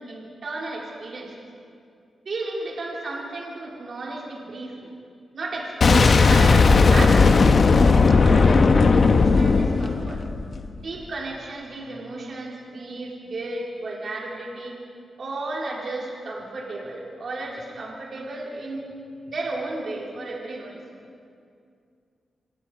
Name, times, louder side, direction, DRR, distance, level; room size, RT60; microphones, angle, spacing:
voice 1, 0.0-1.3 2.3-4.9 5.3-10.2 10.7-14.8 15.2-19.0 19.3-20.8, right 2 dB, 55° right, -3 dB, 4.1 m, -33 dB
Boom, 5.8-10.7, left 4 dB, 50° left, 1.0 m, -16 dB
26.0 x 20.5 x 5.0 m, 2.3 s
cardioid pair, 95°, 0 cm